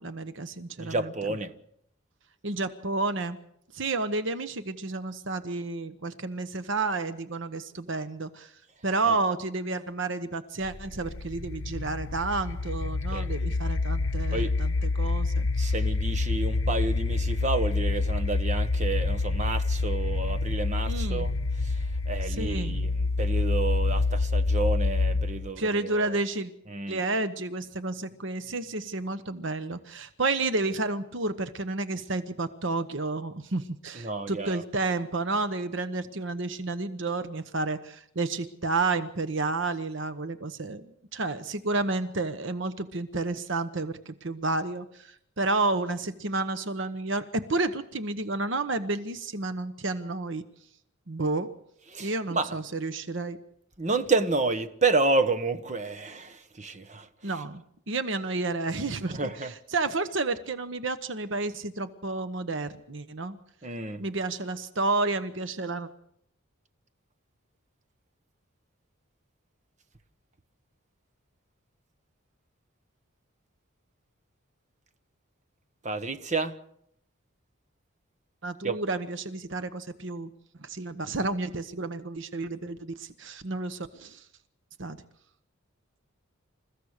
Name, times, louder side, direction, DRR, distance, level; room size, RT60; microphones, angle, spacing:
voice 1, 0.0-1.1 2.4-3.4 3.7-8.5 8.8-15.7 20.9-21.3 22.2-22.8 25.6-26.5 26.9-40.8 41.1-50.4 51.1-51.5 52.0-53.4 57.2-57.6 57.9-63.4 64.0-65.9 78.4-80.3 80.6-84.2 84.8-85.0, right 3 dB, 60° right, 1.0 m, -31 dB
voice 2, 0.8-1.5 9.1-9.2 13.1-13.3 14.3-14.5 15.6-26.2 26.7-27.0 33.9-34.6 51.9-52.5 53.8-57.1 59.1-59.5 63.6-64.0 75.8-76.5 78.6-78.8, right 3 dB, 35° right, 1.2 m, -30 dB
sound 1, 10.6-25.5, left 3 dB, 85° left, 0.8 m, -27 dB
28.5 x 15.0 x 6.6 m
head